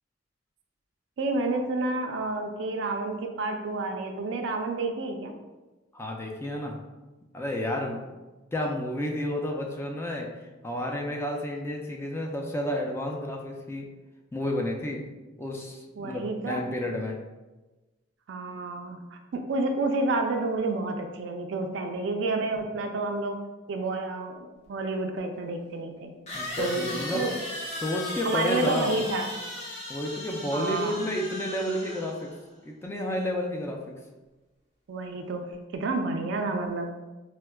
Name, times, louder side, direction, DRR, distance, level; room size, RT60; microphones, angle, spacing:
voice 1, 1.2-5.3 16.0-16.6 18.3-23.4 23.7-26.1 26.6-27.3 28.3-29.3 30.5-31.0 34.9-36.9, right 3 dB, 65° right, 5 dB, 0.4 m, -30 dB
voice 2, 5.9-6.8 7.3-8.1 8.5-10.3 10.6-13.9 14.3-15.0 15.4-17.1 26.3-27.2 27.8-29.0 29.9-32.3 32.6-33.9, left 1 dB, 15° left, 0 dB, 0.3 m, -31 dB
sound 1, 24.6-24.7 26.3-32.4, left 1 dB, 35° left, 0.7 m, -37 dB
4.4 x 2.1 x 2.2 m, 1.1 s
head